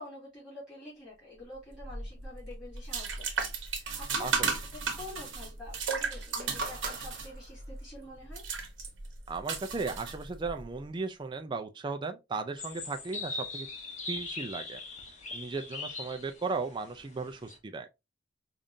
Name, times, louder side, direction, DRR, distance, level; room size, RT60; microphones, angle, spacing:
voice 1, 0.0-3.3 3.6-4.3 4.7-8.4, left 1 dB, 15° left, 2.6 m, -47 dB
sound 1, 1.7-10.6, right 5 dB, 90° right, 1.0 m, -35 dB
voice 2, 4.2-4.5 9.3-13.7 14.1-14.8 15.3-17.9, right 4 dB, 25° right, 0.3 m, -36 dB
sound 2, 6.2-7.9 8.9-9.0, right 3 dB, 45° right, 0.9 m, -42 dB
sound 3, 12.6-17.6, left 2 dB, 40° left, 1.0 m, -40 dB
5.0 x 2.5 x 2.6 m
head